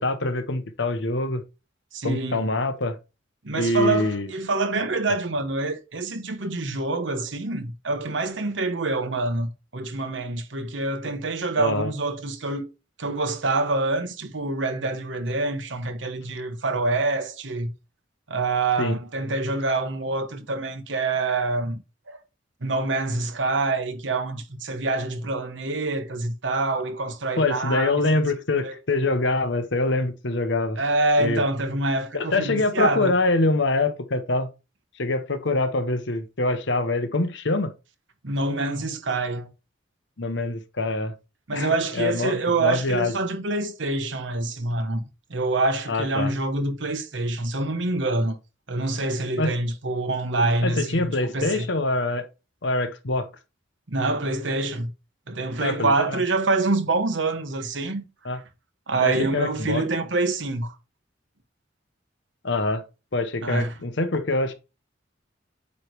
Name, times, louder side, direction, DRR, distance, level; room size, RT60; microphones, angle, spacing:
voice 1, 0.0-1.4 2.0-3.0 3.5-4.3 11.6-11.9 18.8-19.0 27.4-30.8 31.2-31.4 32.1-34.5 35.0-37.7 40.2-41.1 41.5-43.1 45.9-46.3 49.4-49.5 50.6-52.3 52.6-53.3 55.6-56.2 58.2-58.4 59.0-59.8 62.4-62.8 63.1-64.5, left 2 dB, 65° left, 1.1 m, -24 dB
voice 2, 1.9-2.5 3.4-12.6 13.0-17.7 18.3-21.8 22.1-22.2 22.6-28.2 28.6-28.7 30.8-33.1 38.2-39.5 41.5-45.0 45.3-48.4 48.7-51.7 53.9-54.9 55.3-58.0 58.9-60.7 63.4-63.7, right 2 dB, 70° right, 1.2 m, -26 dB
8.4 x 3.3 x 4.7 m
head